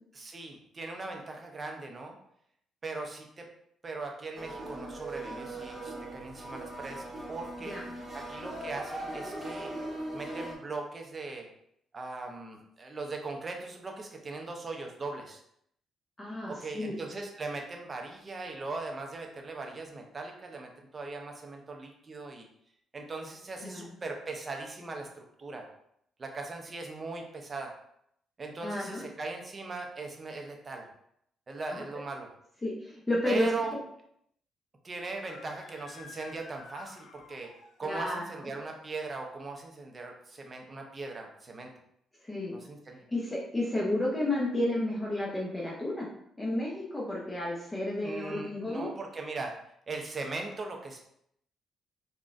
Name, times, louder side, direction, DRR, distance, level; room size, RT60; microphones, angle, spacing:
voice 1, 0.1-2.2 2.8-3.5 3.8-7.8 8.1-9.7 10.1-11.5 11.9-15.4 16.5-22.5 22.9-25.7 26.2-27.7 28.4-30.9 31.5-32.3 33.3-33.8 34.8-37.5 37.8-41.7 42.5-43.0 48.0-49.6 49.9-51.1, right 3 dB, 35° right, 2 dB, 0.6 m, -39 dB
sound 1, 4.3-10.5, right 1 dB, 15° right, 1.0 m, -40 dB
voice 2, 16.2-17.0 23.6-23.8 28.6-29.0 31.7-31.8 32.6-33.5 37.8-38.2 42.2-42.6 43.1-46.1 46.4-48.9, left 1 dB, 15° left, -5 dB, 0.7 m, -31 dB
Screaming, 35.2-38.0, left 5 dB, 70° left, 0.4 m, -51 dB
3.8 x 2.2 x 2.5 m, 0.72 s
cardioid pair, 90°, 0 cm